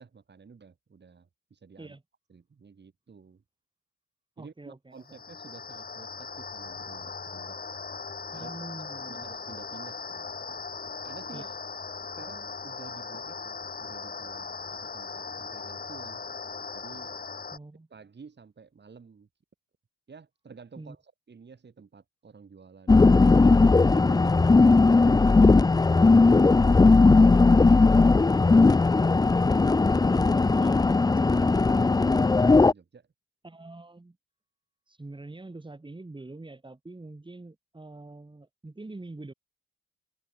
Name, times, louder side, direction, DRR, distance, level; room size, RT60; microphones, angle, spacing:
voice 1, 0.0-2.0 2.3-3.4 4.4-7.6 8.3-8.5 9.1-10.6 11.0-11.5 12.2-16.2 16.7-17.1 17.9-19.3 20.1-23.1 23.9-24.4 24.7-25.4 30.1-30.7 31.3-33.1, right 5 dB, 35° right, 4.8 m, -50 dB
voice 2, 4.4-5.2 8.3-9.2 11.3-11.5 17.5-17.9 20.8-21.0 27.3-27.5 30.5-31.5 33.4-34.2 34.9-39.3, right 2 dB, 15° right, 5.0 m, -44 dB
sound 1, 5.0-17.6, left 5 dB, 30° left, 2.3 m, -39 dB
sound 2, 22.9-32.7, left 3 dB, 15° left, 0.5 m, -18 dB
open air
cardioid pair, 90°, 30 cm